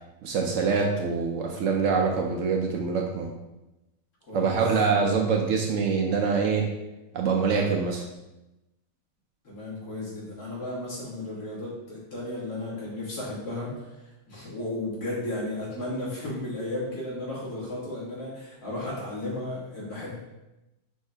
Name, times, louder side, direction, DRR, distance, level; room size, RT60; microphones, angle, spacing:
voice 1, 0.2-3.3 4.3-6.7 7.1-8.1, right 5 dB, 70° right, 1 dB, 0.8 m, -25 dB
voice 2, 9.4-20.2, left 1 dB, 85° left, -7 dB, 2.1 m, -34 dB
5.5 x 2.7 x 3.3 m, 0.97 s
omnidirectional pair, 1.6 m